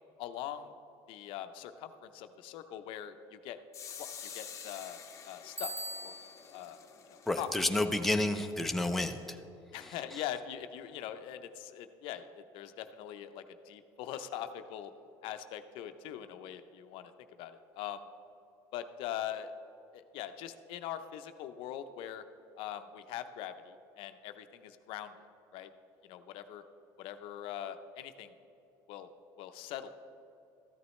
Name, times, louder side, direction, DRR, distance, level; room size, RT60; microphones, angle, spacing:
voice 1, 0.2-0.7 1.1-3.6 4.0-5.0 5.2-5.7 6.0-6.1 6.5-6.8 7.1-7.5 9.7-14.9 15.2-17.1 17.4-18.0 18.7-19.5 19.9-22.2 22.6-25.1 25.5-25.7 26.1-26.6 27.0-28.3 28.9-29.1 29.4-29.9, left 11 dB, 70° left, 9 dB, 0.6 m, -42 dB
sound 1, 3.7-9.4, left 7 dB, 35° left, 0.8 m, -50 dB
Bicycle bell, 5.6-6.5, right 1 dB, 20° right, 2.2 m, -41 dB
voice 2, 7.3-9.4 9.8-10.2, left 2 dB, ahead, 5 dB, 0.5 m, -31 dB
13.5 x 9.3 x 3.1 m, 2.9 s
cardioid pair, 120°, 9 cm